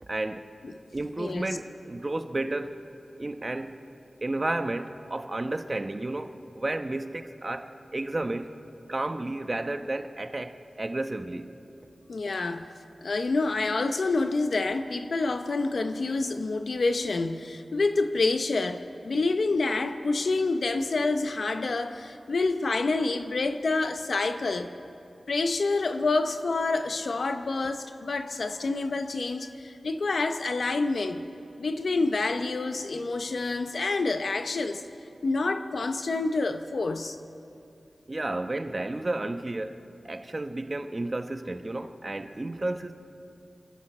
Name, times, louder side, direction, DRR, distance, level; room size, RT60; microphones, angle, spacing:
voice 1, 0.0-0.4 0.9-2.7 3.2-3.8 4.2-8.5 8.9-11.5 38.1-39.8 40.0-42.9, right 2 dB, 40° right, 7 dB, 1.0 m, -32 dB
voice 2, 1.2-1.5 12.1-12.7 13.0-24.7 25.3-31.2 31.6-34.8 35.2-37.2, left 3 dB, 75° left, 8 dB, 0.8 m, -27 dB
29.0 x 11.0 x 4.3 m, 2.6 s
cardioid pair, 55°, 0 cm